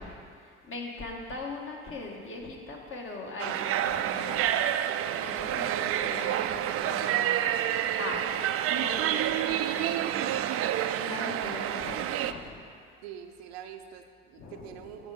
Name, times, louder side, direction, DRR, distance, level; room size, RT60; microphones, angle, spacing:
voice 1, 0.0-4.8 5.2-7.5 8.0-12.6 14.4-14.9, left 2 dB, 45° left, -1 dB, 1.7 m, -41 dB
sound 1, 3.4-12.3, right 11 dB, 50° right, 0.4 m, -28 dB
voice 2, 13.0-15.1, right 9 dB, 85° right, 5 dB, 0.7 m, -44 dB
7.9 x 4.9 x 6.3 m, 2.3 s
hypercardioid pair, 70°, 30 cm